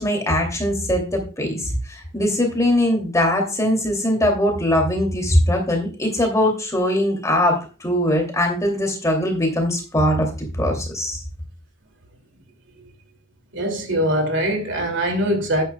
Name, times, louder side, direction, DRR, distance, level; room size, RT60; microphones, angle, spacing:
voice 1, 0.0-11.2, left 1 dB, 15° left, 2.7 m, -21 dB
voice 2, 13.5-15.6, equal, 60° right, 2.5 m, -22 dB
11.5 x 10.5 x 2.3 m
head